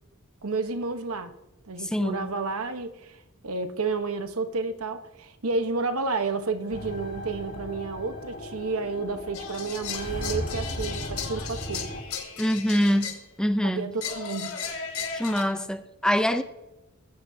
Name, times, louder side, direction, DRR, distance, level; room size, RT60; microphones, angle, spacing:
voice 1, 0.4-1.3 1.6-11.9 13.6-14.5, right 4 dB, 80° right, 1.2 m, -31 dB
voice 2, 1.8-2.3 12.4-13.1 13.4-13.9 15.1-16.4, equal, 5° left, 0.6 m, -24 dB
sound 1, 6.7-12.0, equal, 65° left, 5.6 m, -36 dB
sound 2, 9.3-13.2 14.0-15.4, left 6 dB, 80° left, 2.7 m, -35 dB
19.5 x 15.5 x 2.8 m
head